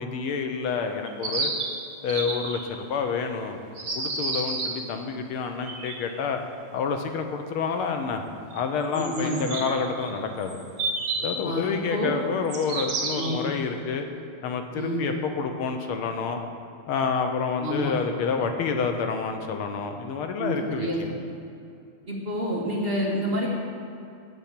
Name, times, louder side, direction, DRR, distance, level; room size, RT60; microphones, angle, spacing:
voice 1, 0.0-1.5 2.0-3.6 3.9-6.4 6.7-8.2 8.5-10.6 11.2-14.1 14.4-16.4 16.9-21.1, left 5 dB, 80° left, 5 dB, 1.6 m, -28 dB
sound 1, 1.1-2.8 3.8-4.8 5.5-6.1 8.5-8.6 8.9-11.4 12.5-13.6, right 3 dB, 65° right, 2.2 m, -31 dB
voice 2, 8.9-9.6 11.4-12.1 13.2-13.4 14.7-15.0 17.6-17.9 20.4-21.0 21.3-21.4 22.1-23.6, equal, 30° right, -4 dB, 1.3 m, -28 dB
7.3 x 7.1 x 8.2 m, 2.6 s
omnidirectional pair, 2.4 m